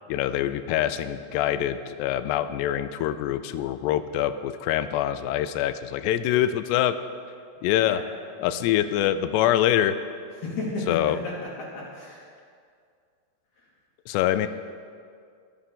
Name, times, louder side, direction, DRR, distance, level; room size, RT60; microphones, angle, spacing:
voice 1, 0.1-7.0 7.6-8.0 8.4-10.0 10.9-11.2 14.1-14.5, left 11 dB, 90° left, 12 dB, 2.8 m, -24 dB
voice 2, 10.4-12.2, left 2 dB, 70° left, -7 dB, 4.2 m, -33 dB
23.0 x 10.0 x 3.8 m, 2.2 s
omnidirectional pair, 4.7 m